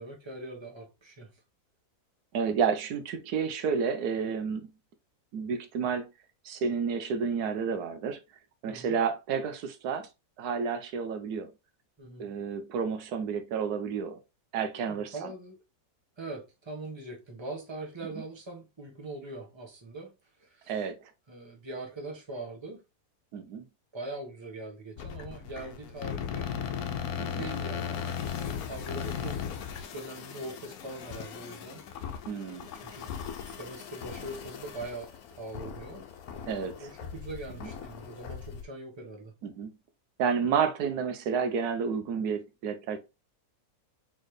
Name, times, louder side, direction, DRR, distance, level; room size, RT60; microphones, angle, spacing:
voice 1, 0.0-1.4 8.7-9.0 12.0-12.3 14.9-15.6 16.2-20.9 21.3-22.8 23.9-26.6 27.3-28.2 28.4-29.6 29.9-31.8 32.6-33.1 33.4-36.1 36.8-39.3, right 2 dB, 20° right, 1.2 m, -42 dB
voice 2, 2.3-4.7 5.3-6.1 6.4-8.2 8.6-10.1 10.4-11.5 12.2-14.2 14.5-15.3 20.7-21.1 23.3-23.6 27.2-27.4 32.3-32.7 36.5-36.7 37.6-37.7 39.4-39.7 40.2-43.0, right 6 dB, 85° right, 1.3 m, -30 dB
sound 1, 25.0-38.6, left 7 dB, 75° left, 1.1 m, -38 dB
4.2 x 3.8 x 3.1 m
omnidirectional pair, 1.6 m